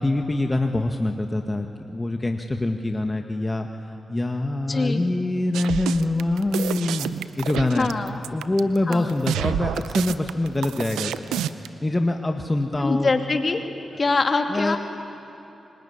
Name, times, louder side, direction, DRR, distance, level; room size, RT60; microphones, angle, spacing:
voice 1, 0.0-3.7 4.1-7.1 7.4-7.9 8.3-11.4 11.8-13.1 14.5-14.8, left 2 dB, 25° left, 4 dB, 1.7 m, -24 dB
voice 2, 4.7-5.0 7.7-8.2 8.9-9.1 12.8-13.6 14.0-14.8, left 3 dB, 50° left, 5 dB, 2.6 m, -23 dB
sound 1, 5.5-11.7, right 10 dB, 90° right, 0.7 m, -28 dB
25.5 x 22.0 x 9.9 m, 2.9 s
supercardioid pair, 40°, 0 cm